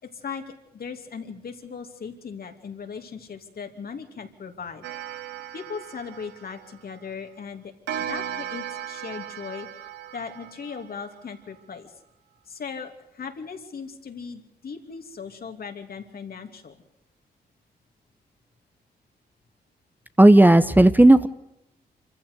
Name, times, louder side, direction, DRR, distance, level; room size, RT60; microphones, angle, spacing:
voice 1, 0.0-4.9 5.5-7.7 8.1-9.7 10.1-11.9 12.5-16.8, left 6 dB, 60° left, 5 dB, 2.8 m, -38 dB
Clock, 4.8-7.1 7.9-11.3, right 10 dB, 90° right, 1.0 m, -36 dB
voice 2, 20.2-21.3, right 1 dB, 10° right, 12 dB, 1.0 m, -13 dB
25.5 x 15.0 x 8.2 m, 0.90 s
supercardioid pair, 55°, 17 cm